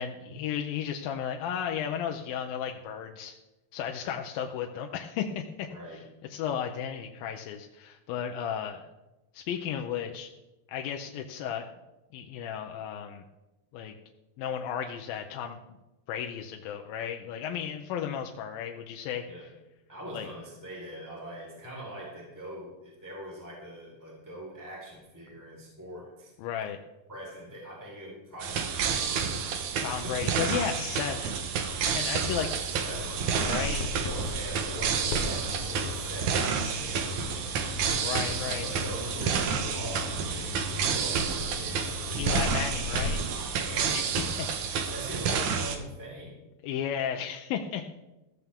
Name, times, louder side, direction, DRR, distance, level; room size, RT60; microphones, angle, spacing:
voice 1, 0.0-3.4 3.7-5.7 6.3-8.9 9.3-10.3 10.7-11.6 12.1-13.2 13.7-13.9 14.4-15.6 16.1-19.2 20.1-20.3 26.4-26.8 29.8-31.4 31.9-32.5 33.4-33.9 37.9-38.7 42.2-43.3 43.9-44.0 44.4-44.8 46.6-47.9, left 8 dB, 85° left, 3 dB, 2.5 m, -34 dB
voice 2, 5.7-6.0 19.3-19.5 19.9-26.3 27.1-29.4 29.7-30.1 32.3-37.5 38.6-44.5 44.9-46.4, right 1 dB, 5° right, -4 dB, 3.9 m, -43 dB
sound 1, 28.4-45.8, right 6 dB, 65° right, 2.3 m, -30 dB
Bird vocalization bird call bird song, 32.9-43.1, left 3 dB, 65° left, 2.1 m, -37 dB
15.5 x 14.0 x 3.6 m, 1.0 s
omnidirectional pair, 4.0 m